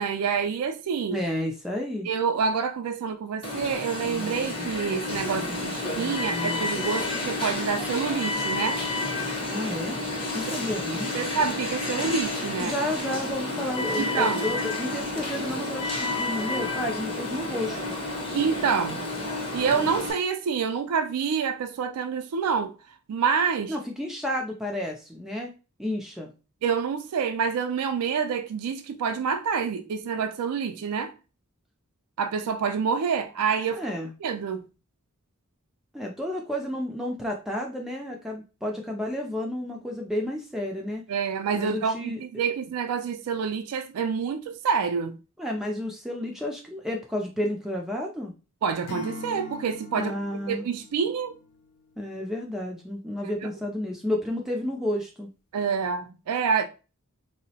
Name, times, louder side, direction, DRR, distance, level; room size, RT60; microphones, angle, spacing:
voice 1, 0.0-1.2 2.1-8.8 11.1-12.7 14.0-14.5 18.3-19.1 19.5-22.7 23.1-23.8 26.6-31.1 32.2-33.8 34.2-34.6 41.1-45.2 48.6-51.3 53.2-53.3 55.5-56.6, right 6 dB, 90° right, 0.4 m, -27 dB
voice 2, 1.1-2.1 9.4-10.0 10.3-11.1 12.6-17.9 23.7-25.5 25.8-26.3 33.7-34.1 35.9-41.0 41.5-42.2 45.4-48.3 49.9-50.6 52.0-55.3, left 1 dB, ahead, 0.3 m, -31 dB
Alarm, 3.4-20.1, left 2 dB, 25° left, 0.7 m, -30 dB
Acoustic guitar / Strum, 48.9-51.9, left 3 dB, 85° left, 0.5 m, -42 dB
3.6 x 2.0 x 2.7 m
head